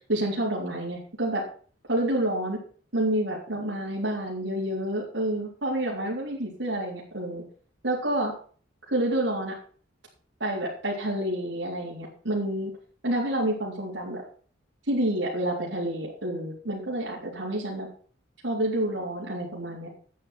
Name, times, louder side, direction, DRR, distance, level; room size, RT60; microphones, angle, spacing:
voice 1, 0.1-1.4 1.9-2.6 2.9-7.4 7.8-8.3 8.9-9.5 10.4-12.7 13.0-14.2 14.9-17.9 18.4-19.9, right 1 dB, 85° right, -7 dB, 3.8 m, -28 dB
12.0 x 9.1 x 4.5 m, 0.43 s
head